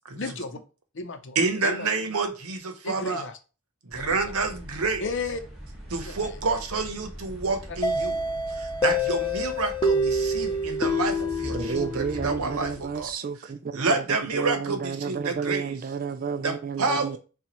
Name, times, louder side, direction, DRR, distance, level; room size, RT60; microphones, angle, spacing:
voice 1, 0.2-0.6 0.9-1.9 2.8-3.4 4.1-4.4 5.0-5.4 6.0-6.4 7.7-7.8 11.2-11.3 12.1-12.2 16.9-17.0, left 3 dB, 55° left, 0.7 m, -34 dB
voice 2, 1.4-3.2 3.8-5.0 5.9-8.1 8.5-13.1 13.7-15.8 16.4-17.2, right 3 dB, 80° right, 0.9 m, -28 dB
sound 1, 3.9-13.1, equal, ahead, 2.1 m, -42 dB
sound 2, 7.8-12.5, left 1 dB, 20° left, 0.7 m, -27 dB
voice 3, 11.5-13.9 14.3-17.2, right 6 dB, 40° right, 0.4 m, -31 dB
6.9 x 2.4 x 3.0 m
head